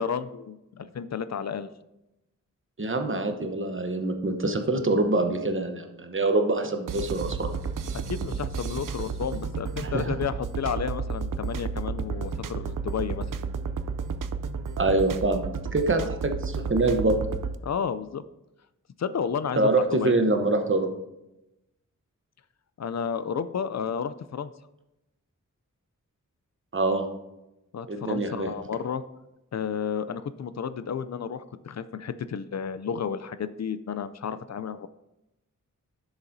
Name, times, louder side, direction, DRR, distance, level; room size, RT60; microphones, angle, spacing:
voice 1, 0.0-1.7 7.9-13.3 15.9-16.1 17.6-18.2 19.0-20.1 22.8-24.5 27.7-29.0 29.5-34.9, left 7 dB, 60° left, 13 dB, 0.4 m, -32 dB
voice 2, 2.8-7.5 9.8-10.1 14.8-15.4 15.7-17.2 19.6-20.9 26.7-27.1 27.9-28.5, right 2 dB, 40° right, 5 dB, 0.9 m, -25 dB
sound 1, 6.9-17.6, right 5 dB, 90° right, 0.5 m, -32 dB
10.5 x 7.1 x 2.7 m, 0.92 s
wide cardioid pair, 90°, 31 cm